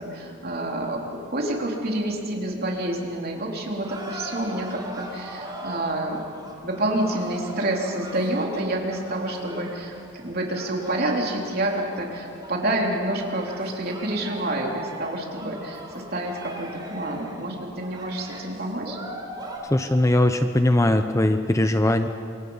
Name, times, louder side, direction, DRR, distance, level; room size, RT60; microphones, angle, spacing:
voice 1, 0.0-6.2 6.6-19.0, right 1 dB, 45° right, 0 dB, 3.4 m, -28 dB
sound 1, 3.8-19.6, right 1 dB, 20° right, 3.6 m, -40 dB
voice 2, 19.7-22.1, left 1 dB, 15° left, 8 dB, 0.7 m, -20 dB
27.0 x 23.5 x 5.6 m, 2.4 s
head